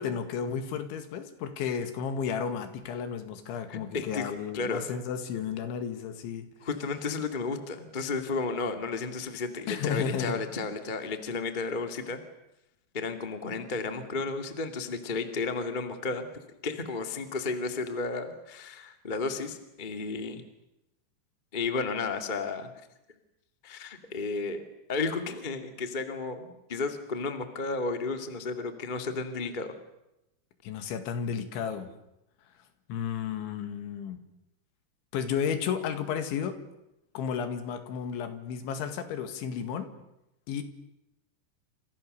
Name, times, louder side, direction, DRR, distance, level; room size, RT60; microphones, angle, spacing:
voice 1, 0.0-6.5 9.7-10.4 30.6-31.9 32.9-34.2 35.1-36.6 37.1-39.9 40.5-40.6, left 7 dB, 85° left, 8 dB, 4.4 m, -33 dB
voice 2, 3.7-4.8 6.6-12.2 12.9-16.3 16.6-20.4 21.5-22.7 23.6-24.6 24.9-29.7, left 4 dB, 30° left, 6 dB, 0.9 m, -33 dB
29.0 x 27.0 x 6.7 m, 0.88 s
omnidirectional pair, 5.3 m